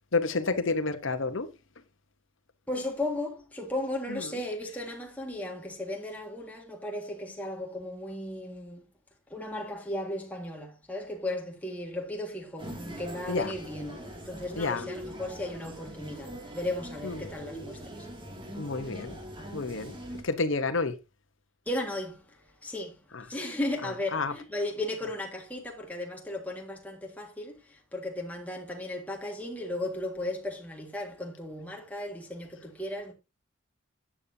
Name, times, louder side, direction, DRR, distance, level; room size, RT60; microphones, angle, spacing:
voice 1, 0.1-1.5 4.1-4.4 13.3-13.5 14.5-14.9 17.0-17.3 18.6-19.2 19.5-20.0 20.2-21.0 23.1-23.2 23.8-24.3, left 3 dB, 70° left, 1.0 m, -30 dB
voice 2, 2.7-8.9 9.3-18.1 19.3-19.4 21.7-33.1, left 1 dB, 5° left, 1.8 m, -36 dB
sound 1, 12.6-20.2, equal, 25° right, 2.3 m, -42 dB
12.0 x 8.6 x 2.7 m
head